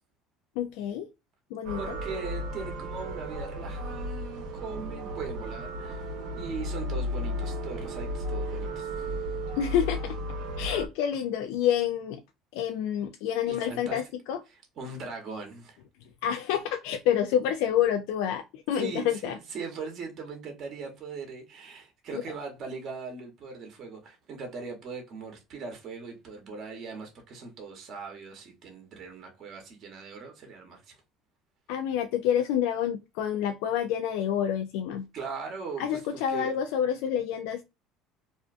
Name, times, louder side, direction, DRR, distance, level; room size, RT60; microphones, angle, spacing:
voice 1, 0.6-1.1 1.5-2.0 9.6-10.2 10.6-12.2 12.5-14.0 14.3-14.4 16.2-19.4 22.1-22.2 31.7-35.1 35.8-37.6, left 9 dB, 80° left, 0.3 m, -28 dB
sound 1, 1.6-10.9, equal, 75° right, 0.8 m, -34 dB
voice 2, 1.8-6.1 6.4-9.3 13.5-14.0 14.5-15.8 18.7-31.0 35.1-36.0 36.3-36.5, right 4 dB, 45° right, 0.9 m, -40 dB
2.5 x 2.2 x 2.4 m
cardioid pair, 125°, 0 cm